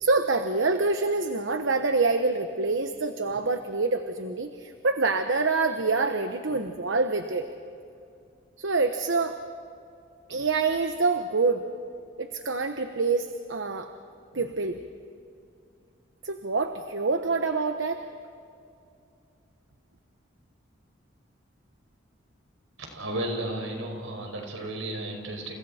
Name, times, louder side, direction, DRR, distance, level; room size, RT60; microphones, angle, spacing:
voice 1, 0.0-7.5 8.6-9.4 10.3-11.6 12.2-13.9 14.3-14.8 16.2-18.0, right 3 dB, 70° right, 7 dB, 1.0 m, -26 dB
voice 2, 22.8-25.6, right 1 dB, 90° right, 3 dB, 5.2 m, -33 dB
30.0 x 30.0 x 4.3 m, 2.5 s
head